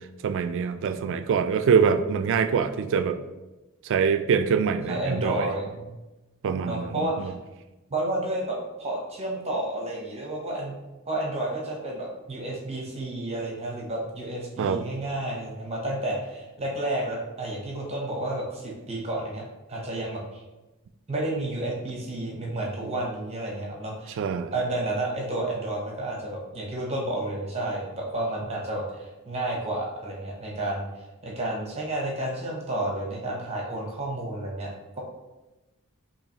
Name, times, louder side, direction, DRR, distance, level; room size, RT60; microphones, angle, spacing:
voice 1, 0.2-3.2 3.8-5.5 6.4-7.3 14.6-14.8 24.2-24.5, right 6 dB, 60° right, 10 dB, 0.3 m, -24 dB
voice 2, 4.9-6.0 6.6-7.3 7.9-10.7 11.1-20.4 21.1-24.2 24.5-35.0, right 1 dB, 30° right, -1 dB, 0.7 m, -31 dB
7.0 x 2.8 x 2.8 m, 1.1 s
head